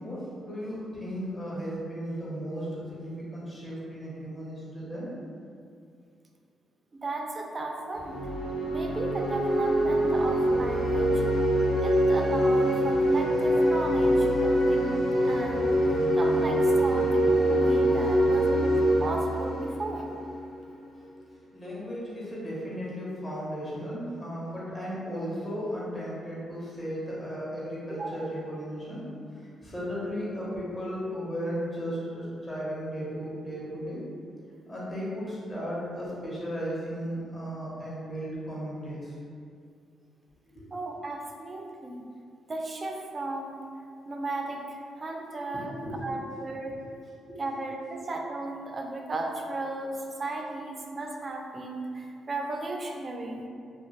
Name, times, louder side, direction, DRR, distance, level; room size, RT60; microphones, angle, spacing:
voice 1, 0.0-5.1 21.5-29.1 29.6-34.0 34.7-39.1 40.5-40.6 45.5-46.2 46.7-46.8 47.3-47.4, equal, 25° left, -7 dB, 0.9 m, -35 dB
voice 2, 6.9-8.2 8.7-11.2 11.8-20.1 28.0-28.2 40.7-42.0 42.5-43.6 44.1-46.8 47.4-53.5, right 2 dB, 35° right, 1 dB, 0.3 m, -35 dB
sound 1, 7.9-20.6, equal, 80° left, 0.7 m, -24 dB
2.4 x 2.3 x 3.0 m, 2.3 s
cardioid pair, 100°, 0 cm